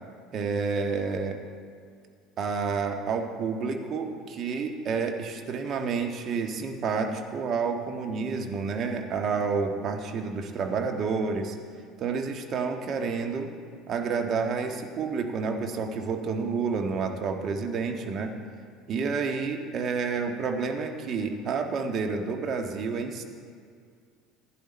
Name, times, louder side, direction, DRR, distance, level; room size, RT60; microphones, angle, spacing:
voice 1, 0.3-1.4 2.4-11.6 12.0-13.5 13.9-18.3 18.9-23.2, right 5 dB, 45° right, 4 dB, 1.5 m, -29 dB
15.5 x 11.0 x 4.3 m, 2.2 s
figure-of-eight pair, 65°, 0 cm